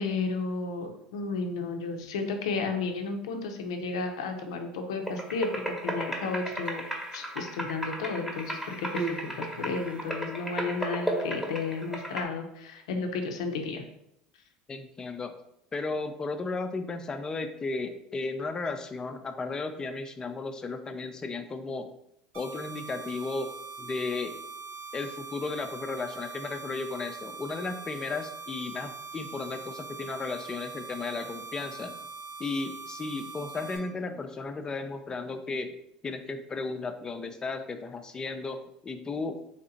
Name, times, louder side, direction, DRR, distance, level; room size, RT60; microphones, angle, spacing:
voice 1, 0.0-6.8 7.1-13.8, left 4 dB, 80° left, 5 dB, 0.6 m, -33 dB
sound 1, 5.1-12.2, right 1 dB, 5° right, 1.0 m, -35 dB
Human voice, 6.5-7.4 8.3-10.3 11.2-11.3, right 5 dB, 35° right, 0.4 m, -41 dB
voice 2, 14.7-15.3 15.7-21.9 22.3-23.5 23.8-24.4 24.9-32.0 32.4-35.7 36.0-39.4, left 3 dB, 25° left, 7 dB, 0.5 m, -34 dB
sound 2, 22.3-33.8, right 4 dB, 70° right, 1.5 m, -42 dB
3.3 x 2.8 x 3.9 m, 0.77 s
hypercardioid pair, 85°, 3 cm